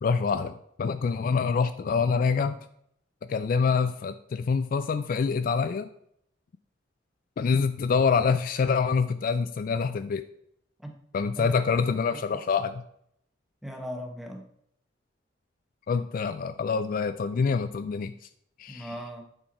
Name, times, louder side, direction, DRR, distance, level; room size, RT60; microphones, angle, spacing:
voice 1, 0.0-2.6 3.3-5.9 7.4-10.3 11.1-12.8 15.9-18.1 18.6-18.9, left 5 dB, 50° left, 11 dB, 0.3 m, -26 dB
voice 2, 11.4-12.4 13.6-14.4 18.7-19.2, equal, ahead, 2 dB, 1.0 m, -39 dB
8.8 x 4.5 x 4.3 m, 0.72 s
head